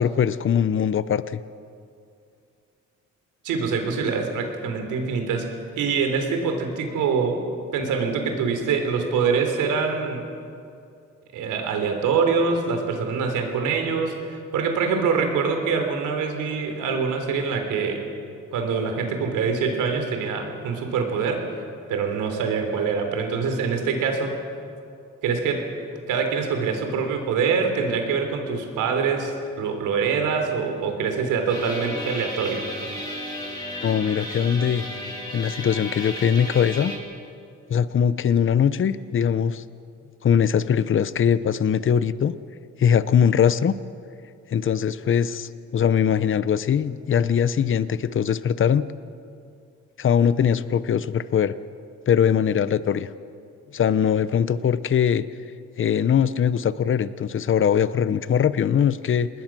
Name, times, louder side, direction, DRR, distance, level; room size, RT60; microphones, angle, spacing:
voice 1, 0.0-1.4 33.8-34.8 35.3-36.9 37.7-39.6 40.2-42.3 42.8-43.8 44.5-48.8 50.0-51.5 52.1-53.1 53.7-55.2 55.8-59.3, left 8 dB, 40° left, 15 dB, 0.8 m, -21 dB
voice 2, 3.4-5.5 5.8-7.4 7.7-10.3 11.3-18.0 18.5-21.5 21.9-24.4 25.2-25.7 26.1-32.7, right 5 dB, 90° right, 5 dB, 3.6 m, -24 dB
sound 1, 31.5-37.0, left 1 dB, 15° left, 7.2 m, -34 dB
27.0 x 20.5 x 6.2 m, 2.5 s
cardioid pair, 90°, 30 cm